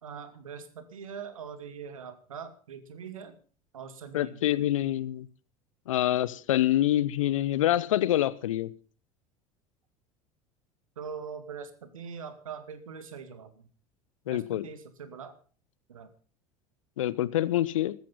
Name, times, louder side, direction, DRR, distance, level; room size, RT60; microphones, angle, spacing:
voice 1, 0.0-3.4 3.7-4.4 11.0-13.7 14.3-15.3 15.9-16.1, right 6 dB, 75° right, 11 dB, 2.2 m, -42 dB
voice 2, 4.1-5.3 5.9-8.7 14.3-14.7 17.0-17.9, left 13 dB, 70° left, 19 dB, 1.0 m, -26 dB
15.0 x 13.5 x 5.6 m, 0.39 s
figure-of-eight pair, 70°, 18 cm